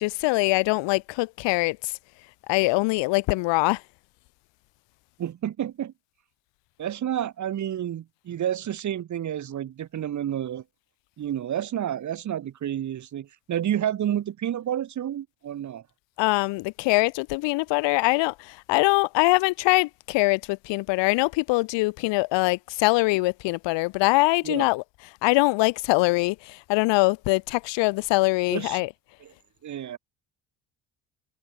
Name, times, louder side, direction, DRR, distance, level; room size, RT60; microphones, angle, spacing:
voice 1, 0.0-1.9 2.5-3.8 16.2-24.8 25.2-28.9, left 23 dB, 75° left, 1.7 m, -23 dB
voice 2, 5.2-5.9 6.8-10.6 11.2-15.8 24.4-24.7 28.5-28.8 29.2-29.3 29.6-30.0, right 10 dB, 40° right, 1.2 m, -30 dB
supercardioid pair, 85°, 44 cm